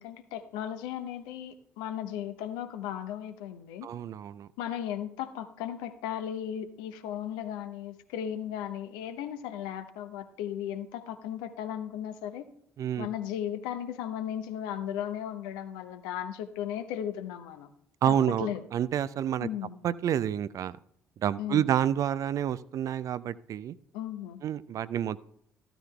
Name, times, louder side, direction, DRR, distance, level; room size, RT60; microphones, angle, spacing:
voice 1, 0.0-3.9 4.6-12.5 13.0-17.7 18.1-18.6 19.4-19.8 21.4-21.7 23.9-24.4, left 10 dB, 65° left, 9 dB, 0.8 m, -36 dB
voice 2, 3.8-4.5 12.8-13.1 18.0-19.5 19.8-20.8 21.2-23.8 24.4-25.3, right 10 dB, 45° right, 17 dB, 0.4 m, -29 dB
14.0 x 13.0 x 2.3 m, 0.71 s
figure-of-eight pair, 50°, 8 cm